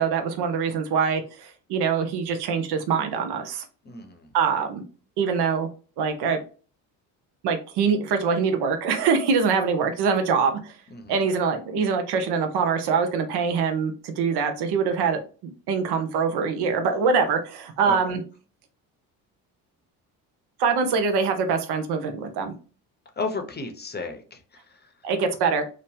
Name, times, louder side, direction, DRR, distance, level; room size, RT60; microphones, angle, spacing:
voice 1, 0.0-3.6 4.3-4.8 5.2-5.7 6.0-6.4 7.4-10.8 11.1-15.2 15.7-18.2 20.6-22.5 25.0-25.6, right 5 dB, 60° right, 6 dB, 0.8 m, -24 dB
voice 2, 3.8-4.3 10.9-11.2 17.8-18.0 23.2-24.9, left 3 dB, 20° left, 6 dB, 0.8 m, -34 dB
3.0 x 2.2 x 2.6 m, 0.37 s
hypercardioid pair, 60°, 46 cm